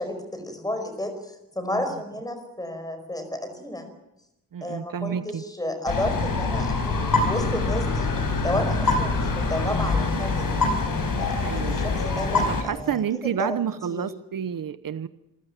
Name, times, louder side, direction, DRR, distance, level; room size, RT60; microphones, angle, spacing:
voice 1, 0.0-3.8 4.6-8.1 8.4-10.5 11.2-13.6 13.9-14.1, left 1 dB, 10° left, 7 dB, 5.0 m, -32 dB
voice 2, 4.5-5.4 11.4-11.8 12.5-15.1, right 8 dB, 70° right, 13 dB, 0.9 m, -29 dB
sound 1, 5.9-12.6, left 3 dB, 70° left, 5.3 m, -24 dB
27.0 x 15.0 x 9.3 m, 0.90 s
wide cardioid pair, 160°, 34 cm